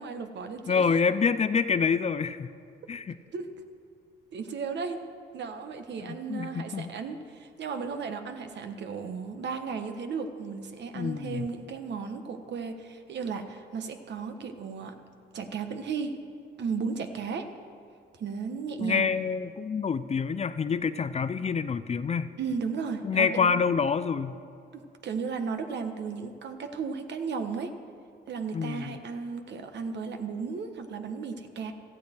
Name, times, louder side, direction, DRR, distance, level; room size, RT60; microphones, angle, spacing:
voice 1, 0.0-0.8 3.3-3.5 4.3-5.0 5.3-14.9 15.3-16.2 16.6-17.5 18.2-19.1 22.4-23.6 25.0-27.7 28.3-31.7, right 5 dB, 60° right, 6 dB, 1.3 m, -35 dB
voice 2, 0.7-2.5 2.9-3.1 6.0-6.9 10.9-11.5 18.8-22.3 23.0-24.4 28.5-29.0, left 5 dB, 35° left, 13 dB, 0.5 m, -27 dB
17.0 x 13.5 x 4.5 m, 2.4 s
cardioid pair, 90°, 20 cm